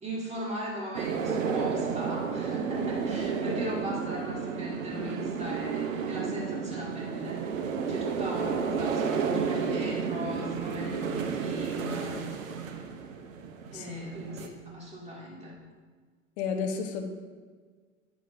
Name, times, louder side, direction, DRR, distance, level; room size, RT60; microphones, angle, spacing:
voice 1, 0.0-7.4 7.9-12.3 13.7-15.5, equal, 15° right, -4 dB, 2.0 m, -38 dB
sound 1, 0.9-14.5, right 6 dB, 75° right, 0.8 m, -32 dB
voice 2, 16.4-17.0, left 6 dB, 55° left, 4 dB, 1.2 m, -31 dB
8.9 x 8.0 x 2.6 m, 1.5 s
hypercardioid pair, 90°, 40 cm